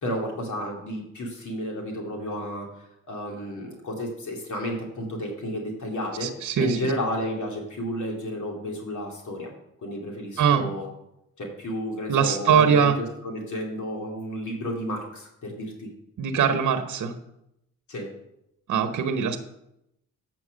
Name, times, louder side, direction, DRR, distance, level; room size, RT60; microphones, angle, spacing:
voice 1, 0.0-2.7 3.1-6.3 6.6-9.5 9.8-10.9 11.4-12.9 13.2-15.9 17.9-18.1, equal, 65° left, 0 dB, 2.5 m, -32 dB
voice 2, 6.2-6.9 10.4-10.7 12.1-13.0 16.2-17.2 18.7-19.4, right 7 dB, 65° right, 6 dB, 1.0 m, -22 dB
8.1 x 6.1 x 6.2 m, 0.81 s
cardioid pair, 70°, 33 cm